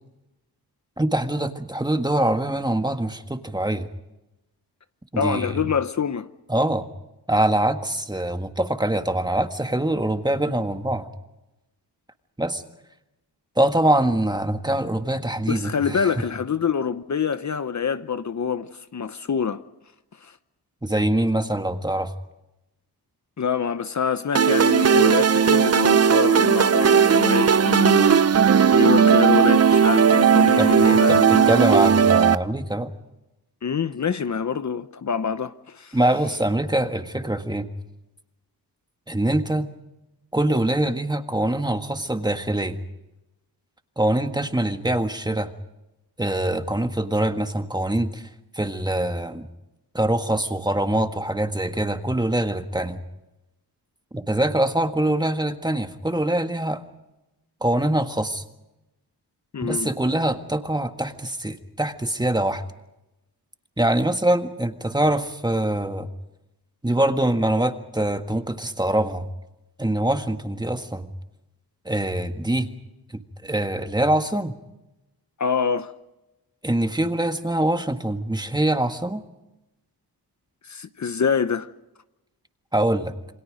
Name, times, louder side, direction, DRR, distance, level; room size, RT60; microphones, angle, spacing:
voice 1, 1.0-3.9 5.1-5.7 6.5-6.9 7.3-11.1 12.4-12.6 13.6-16.1 20.8-22.1 30.6-32.9 35.9-37.7 39.1-39.7 40.3-42.8 44.0-45.5 46.2-48.3 48.5-49.5 49.9-53.0 54.1-56.8 57.6-58.4 59.6-62.6 63.8-66.1 66.8-69.3 69.8-71.1 71.9-72.7 73.1-74.5 76.6-79.2 82.7-83.1, right 1 dB, 10° right, 1.7 m, -24 dB
voice 2, 5.2-6.3 15.5-19.6 20.2-20.3 23.4-31.5 33.6-36.0 59.5-59.9 75.4-75.9 80.6-81.7, left 6 dB, 45° left, 0.9 m, -26 dB
sound 1, 24.4-32.4, right 7 dB, 40° right, 0.7 m, -16 dB
28.5 x 25.0 x 5.2 m
wide cardioid pair, 115°, 39 cm